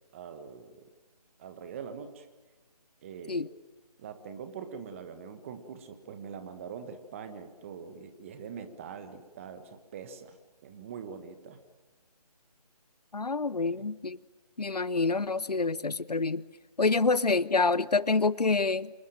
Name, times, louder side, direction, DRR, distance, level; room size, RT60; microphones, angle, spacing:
voice 1, 0.1-0.8 1.4-2.3 3.0-3.5 4.0-10.4 10.6-11.6 13.6-13.9 17.1-17.2, right 6 dB, 20° right, 9 dB, 1.4 m, -43 dB
voice 2, 13.1-14.2 14.6-16.4 16.8-18.9, left 3 dB, 75° left, 20 dB, 0.8 m, -27 dB
27.0 x 19.0 x 9.0 m, 1.2 s
figure-of-eight pair, 155°, 20 cm